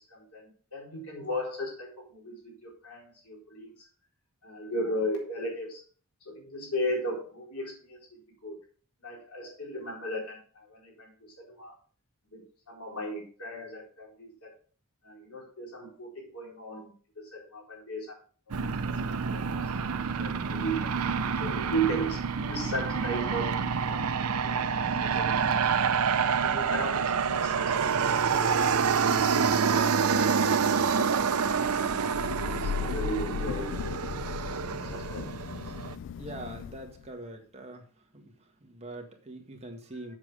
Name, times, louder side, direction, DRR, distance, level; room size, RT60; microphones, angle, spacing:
voice 1, 0.1-3.9 4.4-5.8 6.3-8.5 9.0-11.8 12.3-14.5 15.0-18.2 19.0-19.8 20.2-21.0 21.4-25.9 26.4-30.7 32.4-33.8 34.4-35.4 40.1-40.2, right 1 dB, 85° left, -1 dB, 4.1 m, -37 dB
Aircraft, 18.5-35.9, right 6 dB, 80° right, 0.6 m, -27 dB
Thunder / Rain, 31.3-37.1, left 7 dB, 60° left, 0.3 m, -37 dB
voice 2, 36.2-37.8 38.1-38.2 38.6-40.1, right 1 dB, 30° right, 3 dB, 1.7 m, -43 dB
7.5 x 7.2 x 4.9 m, 0.42 s
head